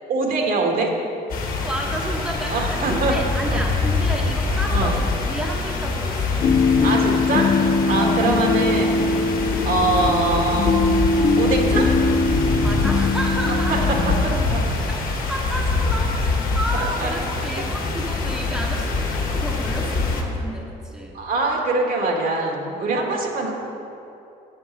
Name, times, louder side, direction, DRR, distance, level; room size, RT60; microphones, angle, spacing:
voice 1, 0.1-0.9 2.5-3.1 3.4-3.6 4.7-4.9 6.8-7.5 7.9-9.1 9.7-10.8 11.4-11.9 13.7-13.8 14.2-14.6 16.7-17.5 21.1-23.5, right 3 dB, 60° right, 0 dB, 1.8 m, -23 dB
sound 1, 1.3-20.2, left 3 dB, 55° left, 1.6 m, -24 dB
voice 2, 1.6-6.5 8.0-8.2 11.5-12.2 12.6-14.0 14.9-21.2, right 1 dB, 5° right, -2 dB, 1.1 m, -31 dB
sound 2, 6.4-14.3, left 3 dB, 40° left, 0.6 m, -21 dB
7.9 x 7.6 x 6.0 m, 2.7 s
cardioid pair, 110°, 17 cm